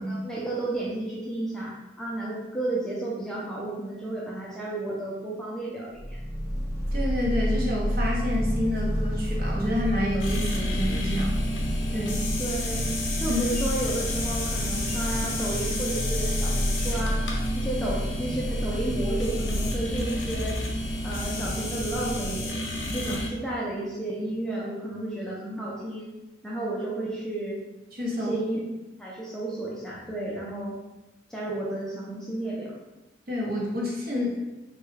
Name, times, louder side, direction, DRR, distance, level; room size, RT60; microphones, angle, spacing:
voice 1, 0.1-6.2 12.4-17.2 17.5-20.6 21.0-22.6 22.9-26.1 26.4-27.6 28.1-28.6 29.0-30.8 31.3-32.8, right 2 dB, 5° left, -6 dB, 0.4 m, -32 dB
sound 1, 5.9-22.5, equal, 75° right, 1.0 m, -30 dB
voice 2, 6.9-11.4 11.9-12.3 13.3-13.6 23.1-23.2 27.9-28.3 33.3-34.4, left 1 dB, 50° right, -4 dB, 0.8 m, -29 dB
sound 2, 10.2-23.3, left 1 dB, 85° left, 0.7 m, -32 dB
3.2 x 2.3 x 3.2 m, 1.0 s
head